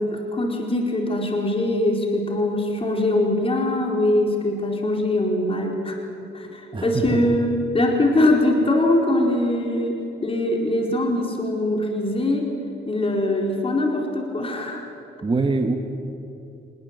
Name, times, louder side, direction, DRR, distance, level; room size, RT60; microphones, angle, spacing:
voice 1, 0.0-6.0 6.3-12.5 12.9-14.8, left 1 dB, 30° left, 1 dB, 4.4 m, -22 dB
voice 2, 6.7-7.3 15.2-15.8, right 3 dB, 25° right, 4 dB, 1.8 m, -23 dB
24.5 x 21.0 x 8.2 m, 2.9 s
cardioid pair, 90°, 20 cm